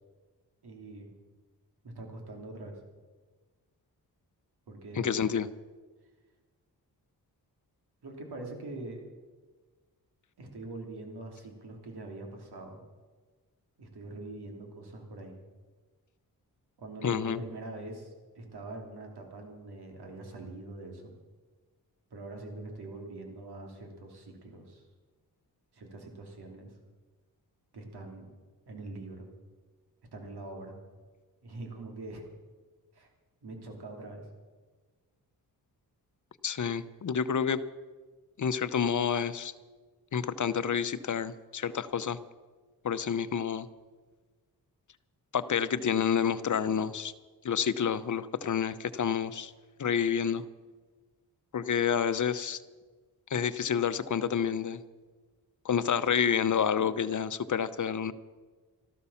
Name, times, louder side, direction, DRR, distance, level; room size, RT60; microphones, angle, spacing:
voice 1, 0.6-1.1 1.8-2.8 4.7-5.2 8.0-9.1 10.4-12.8 13.8-15.4 16.8-21.1 22.1-24.8 25.7-26.7 27.7-28.3 28.7-29.3 30.1-30.8 31.4-32.3 32.9-33.1 33.4-34.2, right 2 dB, 75° right, 2 dB, 3.1 m, -43 dB
voice 2, 5.0-5.5 17.0-17.4 36.4-37.6 38.4-39.5 40.1-42.2 42.8-43.7 45.3-47.1 47.4-49.5 49.8-50.4 51.5-52.6 53.3-54.8 55.6-58.1, left 7 dB, 50° left, 13 dB, 0.9 m, -29 dB
13.5 x 12.5 x 7.2 m, 1.4 s
cardioid pair, 60°, 39 cm